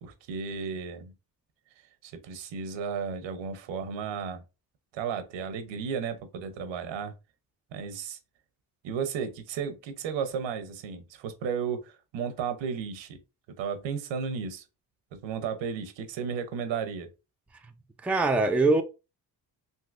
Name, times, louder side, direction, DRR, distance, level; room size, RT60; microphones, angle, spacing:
voice 1, 0.0-1.1 2.0-4.4 4.9-7.1 7.7-8.2 8.8-13.2 13.6-14.6 15.1-17.1, right 6 dB, 85° right, 0.7 m, -34 dB
voice 2, 18.0-18.8, right 3 dB, 5° right, 0.4 m, -23 dB
3.6 x 2.7 x 2.4 m
cardioid pair, 70°, 44 cm